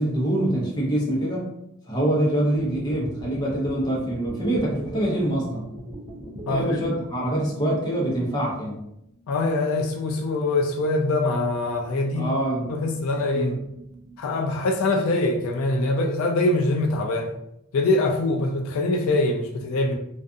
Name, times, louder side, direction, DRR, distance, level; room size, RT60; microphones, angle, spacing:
voice 1, 0.0-1.4 1.9-5.7 6.5-8.8 12.1-12.7 13.3-13.6, right 1 dB, 20° left, -4 dB, 0.7 m, -25 dB
sound 1, 2.5-7.9 8.3-8.4 8.6-8.7 9.0-9.8 10.0-14.3, right 1 dB, 20° right, 0.4 m, -41 dB
voice 2, 9.3-12.3 12.7-13.6 14.2-17.3 17.7-20.0, left 2 dB, 75° left, 2 dB, 0.4 m, -23 dB
2.4 x 2.4 x 2.5 m, 0.80 s
head